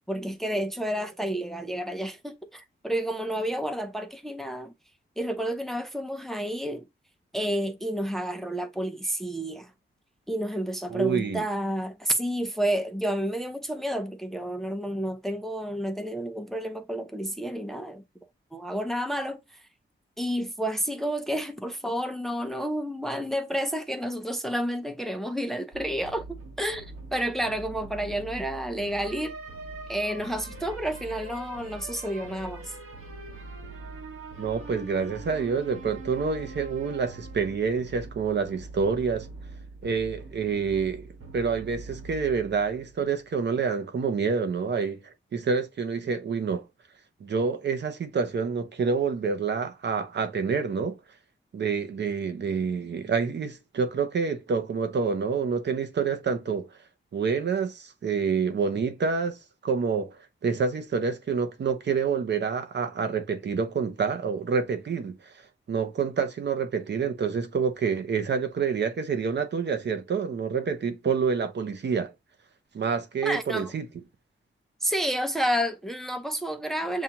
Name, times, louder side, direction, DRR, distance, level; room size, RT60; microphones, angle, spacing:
voice 1, 0.1-4.7 5.2-6.8 7.3-9.7 10.3-18.0 18.5-19.6 20.2-29.3 29.9-32.7 73.2-73.7 74.8-77.0, equal, ahead, 0.5 m, -30 dB
voice 2, 10.9-11.4 34.4-39.3 39.8-41.0 41.3-45.0 45.3-46.6 47.2-51.0 51.5-56.7 57.1-59.4 59.6-60.2 60.4-65.2 65.7-72.1 72.7-73.9, right 5 dB, 55° right, 0.7 m, -27 dB
sound 1, 25.7-43.3, right 2 dB, 85° right, 1.7 m, -43 dB
7.2 x 2.4 x 2.9 m
wide cardioid pair, 145°, 21 cm